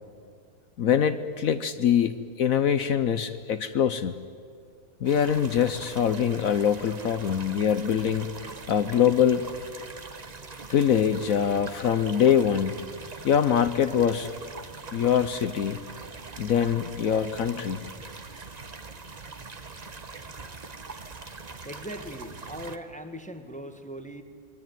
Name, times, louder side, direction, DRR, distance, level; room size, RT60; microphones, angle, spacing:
voice 1, 0.8-4.2 5.0-8.3 8.7-9.5 10.7-12.8 13.2-14.3 14.9-15.8 16.4-17.8, left 8 dB, 65° left, 11 dB, 1.2 m, -23 dB
sound 1, 5.0-22.8, right 4 dB, 30° right, 1.2 m, -42 dB
voice 2, 21.6-24.2, equal, 5° left, 7 dB, 1.4 m, -39 dB
28.0 x 22.0 x 9.3 m, 2.2 s
omnidirectional pair, 1.6 m